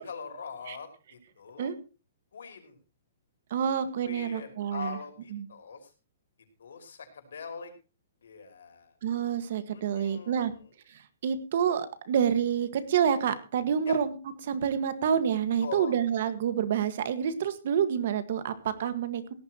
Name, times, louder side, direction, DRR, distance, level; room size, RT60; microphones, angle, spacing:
voice 1, 0.0-1.7 2.3-2.8 4.0-5.9 6.6-7.7 8.2-8.9 9.7-10.7 13.9-14.0 15.6-16.0, left 5 dB, 90° left, 5 dB, 5.2 m, -42 dB
voice 2, 3.5-5.0 5.3-5.5 9.0-10.5 10.9-14.1 14.4-19.3, right 8 dB, 45° right, 12 dB, 1.6 m, -28 dB
17.5 x 13.5 x 3.0 m, 0.33 s
hypercardioid pair, 175°, 0 cm